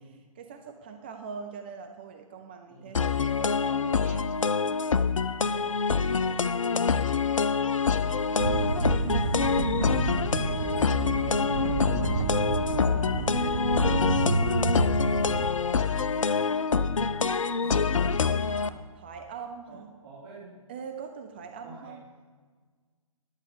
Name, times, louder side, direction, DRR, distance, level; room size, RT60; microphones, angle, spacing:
voice 1, 0.0-4.3 5.5-5.6 7.2-7.5 12.4-13.1 15.5-16.0 16.3-16.7 18.3-19.9 20.7-22.0, right 6 dB, 20° right, 5 dB, 0.4 m, -43 dB
voice 2, 2.7-3.0 5.4-5.7 6.0-6.7 7.9-8.7 10.3-10.9 17.6-17.9 19.7-20.5 21.6-22.1, right 2 dB, 40° right, -11 dB, 3.3 m, -48 dB
sound 1, 2.9-18.7, left 5 dB, 65° left, 0.5 m, -26 dB
sound 2, 8.4-15.5, right 4 dB, 65° right, 0.9 m, -29 dB
10.5 x 7.3 x 5.1 m, 1.5 s
figure-of-eight pair, 135°, 18 cm